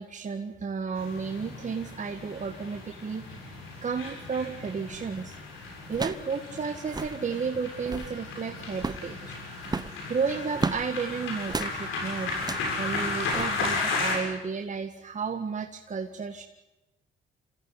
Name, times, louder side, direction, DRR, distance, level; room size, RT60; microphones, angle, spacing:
voice 1, 0.0-3.6 3.8-5.4 5.9-9.4 10.1-12.3 12.8-16.4, right 5 dB, 40° right, 4 dB, 1.8 m, -32 dB
sound 1, 1.0-14.2, left 3 dB, 90° left, 7.4 m, -35 dB
sound 2, 4.9-5.2 5.9-6.3 6.6-6.7 6.8-7.2 7.7-8.2 8.7-9.1 9.6-10.9 11.5-11.8 12.4-12.7 13.3-13.5, right 4 dB, 20° right, 0.9 m, -33 dB
27.5 x 15.0 x 9.8 m, 0.95 s
cardioid pair, 90°, 20 cm